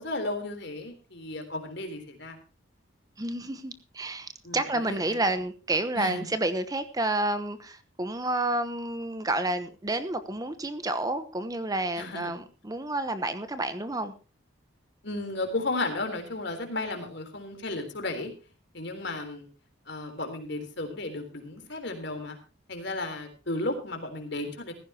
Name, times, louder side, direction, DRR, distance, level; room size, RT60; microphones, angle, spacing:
voice 1, 0.0-2.4 4.4-5.2 6.0-6.3 12.0-12.3 15.0-18.3 18.7-19.5 19.9-22.4 22.7-24.7, left 2 dB, 60° left, 6 dB, 3.7 m, -34 dB
voice 2, 3.2-14.1, right 2 dB, 20° right, 10 dB, 0.9 m, -30 dB
16.0 x 15.0 x 2.9 m, 0.33 s
head